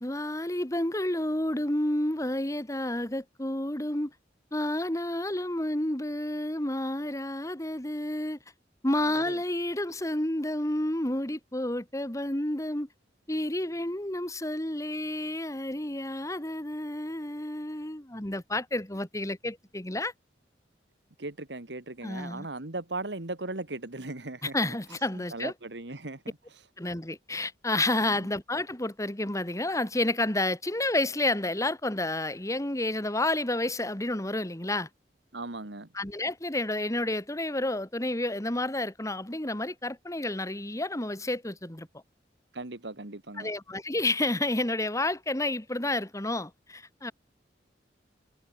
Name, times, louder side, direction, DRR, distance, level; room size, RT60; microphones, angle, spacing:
voice 1, 0.0-4.1 4.5-8.4 8.8-12.9 13.3-20.1 22.0-22.5 24.4-25.5 26.8-34.9 35.9-41.9 43.4-47.1, left 1 dB, 20° left, 2.2 m, -30 dB
voice 2, 9.0-9.4 21.2-24.5 25.3-26.2 28.0-28.1 35.3-35.9 42.5-43.5, right 2 dB, 80° right, 2.2 m, -38 dB
head